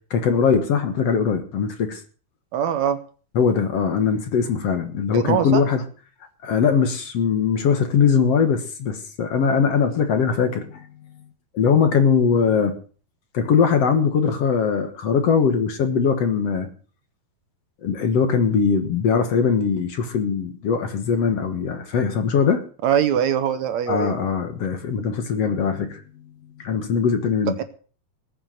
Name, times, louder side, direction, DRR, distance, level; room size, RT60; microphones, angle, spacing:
voice 1, 0.1-2.0 3.4-5.8 6.4-10.9 11.5-12.7 13.3-16.7 17.8-22.6 23.9-26.0 26.6-27.6, left 6 dB, 55° left, 7 dB, 2.2 m, -21 dB
voice 2, 2.5-3.0 5.1-5.6 22.8-24.2, right 9 dB, 65° right, 10 dB, 2.1 m, -22 dB
20.0 x 7.7 x 6.5 m, 0.40 s
omnidirectional pair, 3.8 m